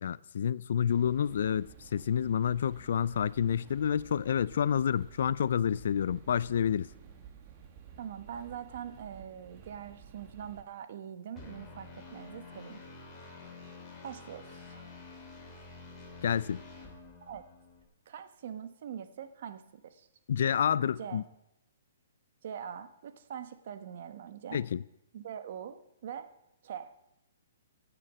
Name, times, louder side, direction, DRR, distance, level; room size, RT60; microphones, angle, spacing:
voice 1, 0.0-6.9 16.2-16.6 20.3-21.2 24.5-24.8, left 8 dB, 60° left, 0.4 m, -29 dB
sound 1, 0.9-10.6, right 7 dB, 30° right, 1.4 m, -53 dB
voice 2, 8.0-12.8 13.2-13.5 14.0-14.8 17.2-17.4 18.1-20.1 20.8-21.2 22.4-24.6 25.1-26.3 26.6-26.9, right 8 dB, 50° right, 1.1 m, -43 dB
sound 2, 11.4-17.8, left 3 dB, 10° left, 2.9 m, -49 dB
17.0 x 6.8 x 7.5 m
hypercardioid pair, 170°, 0 cm